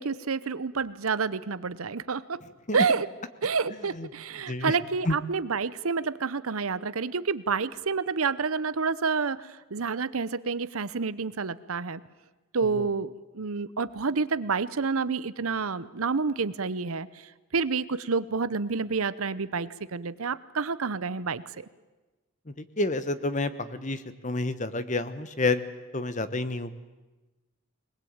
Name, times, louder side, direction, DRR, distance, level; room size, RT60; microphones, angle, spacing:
voice 1, 0.0-2.4 2.7-3.1 3.4-12.0 12.5-17.3 17.5-21.7, right 5 dB, 75° right, 16 dB, 0.8 m, -29 dB
voice 2, 22.5-25.6 25.9-26.7, left 2 dB, 35° left, 12 dB, 1.1 m, -29 dB
22.5 x 20.0 x 8.9 m, 1.2 s
head